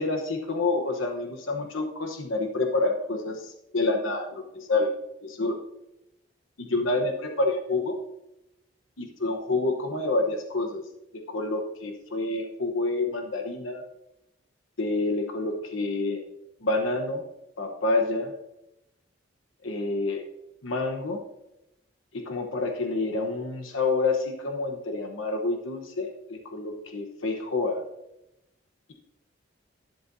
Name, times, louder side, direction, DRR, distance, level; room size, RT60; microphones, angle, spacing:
voice 1, 0.0-4.9 5.2-5.5 6.6-7.9 9.0-10.8 11.3-13.8 14.8-16.2 16.6-17.2 17.6-18.3 19.6-20.2 20.6-21.2 22.3-27.8, left 2 dB, 85° left, 3 dB, 1.1 m, -28 dB
11.5 x 11.0 x 2.7 m, 0.90 s
head